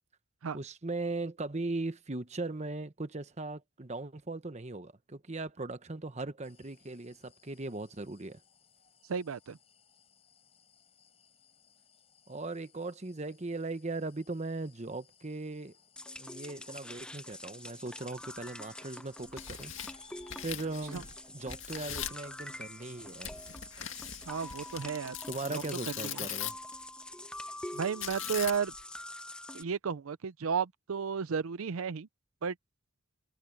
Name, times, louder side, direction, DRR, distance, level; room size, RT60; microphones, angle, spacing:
voice 1, 0.5-8.4 12.3-15.8 16.2-19.7 20.4-23.4 25.3-26.6, right 2 dB, 30° right, 1.0 m, -39 dB
sound 1, 6.4-24.5, left 7 dB, 30° left, 5.6 m, -64 dB
voice 2, 9.1-9.6 20.9-21.0 24.3-25.1 25.5-25.6 26.0-26.2 27.7-28.7 29.5-32.1 32.4-32.5, right 6 dB, 85° right, 0.5 m, -33 dB
sound 2, 16.0-29.6, left 1 dB, 5° left, 0.5 m, -45 dB
Tearing, 19.2-21.2 21.5-22.2 23.2-26.7 28.0-28.8, left 10 dB, 65° left, 2.2 m, -41 dB
head